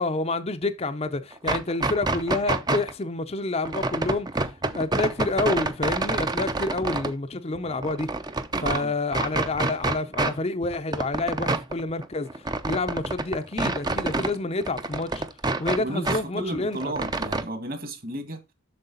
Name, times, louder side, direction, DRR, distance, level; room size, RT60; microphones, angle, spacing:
voice 1, 0.0-4.3 4.7-8.1 8.6-15.2 15.6-16.9, left 2 dB, 30° left, 0.6 m, -28 dB
sound 1, 1.3-2.9 3.6-7.1 7.5-8.8 9.1-10.4 10.6-14.3 14.6-16.2 16.5-17.4, right 2 dB, 20° right, 0.6 m, -27 dB
voice 2, 8.6-8.9 15.8-18.4, right 1 dB, 45° right, 1.8 m, -33 dB
7.8 x 6.6 x 3.9 m
head